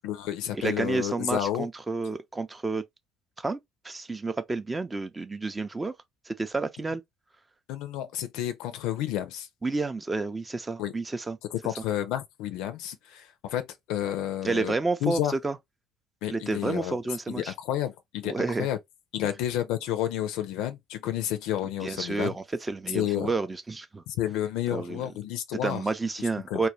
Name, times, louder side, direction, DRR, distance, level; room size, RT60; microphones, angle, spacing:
voice 1, 0.0-1.7 7.7-9.5 10.8-10.9 11.5-14.7 15.0-15.3 16.2-17.0 17.3-18.8 19.1-22.3 22.9-23.3 24.1-25.8 26.5-26.6, left 12 dB, 70° left, 0.4 m, -30 dB
voice 2, 0.5-2.8 3.4-3.6 3.8-5.9 6.3-7.0 9.6-11.4 14.4-15.6 16.3-17.5 18.2-18.7 21.8-24.0 24.7-25.0 25.6-26.7, right 3 dB, 20° right, 0.4 m, -30 dB
2.3 x 2.1 x 2.9 m
hypercardioid pair, 60°, 0 cm